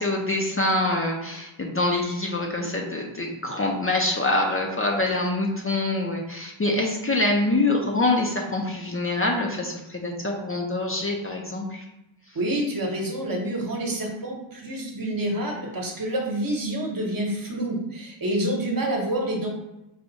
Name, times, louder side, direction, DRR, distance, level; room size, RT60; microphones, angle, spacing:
voice 1, 0.0-11.8, left 2 dB, 30° left, 0 dB, 0.5 m, -25 dB
voice 2, 12.3-19.5, right 1 dB, 45° right, -1 dB, 1.0 m, -28 dB
4.8 x 2.3 x 3.9 m, 0.92 s
wide cardioid pair, 140°, 49 cm